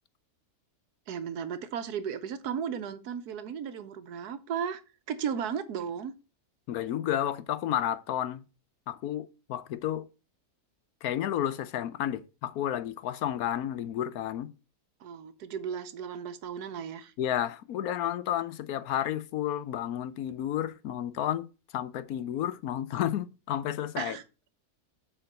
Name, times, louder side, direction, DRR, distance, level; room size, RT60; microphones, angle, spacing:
voice 1, 1.1-4.8 5.1-6.1 15.0-17.1 24.0-24.2, right 7 dB, 90° right, 1.4 m, -35 dB
voice 2, 6.7-8.4 8.9-10.0 11.0-14.5 17.2-21.5 21.7-24.2, left 11 dB, 75° left, 1.1 m, -31 dB
7.3 x 4.6 x 6.5 m
omnidirectional pair, 1.6 m